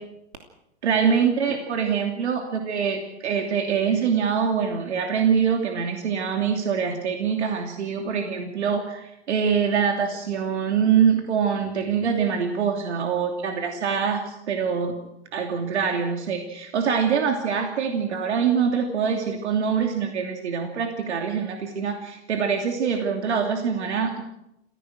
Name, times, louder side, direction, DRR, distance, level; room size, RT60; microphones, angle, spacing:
voice 1, 0.8-14.9 15.3-24.2, right 6 dB, 85° right, 3 dB, 2.9 m, -24 dB
29.0 x 16.5 x 6.4 m, 0.84 s
hypercardioid pair, 175°, 33 cm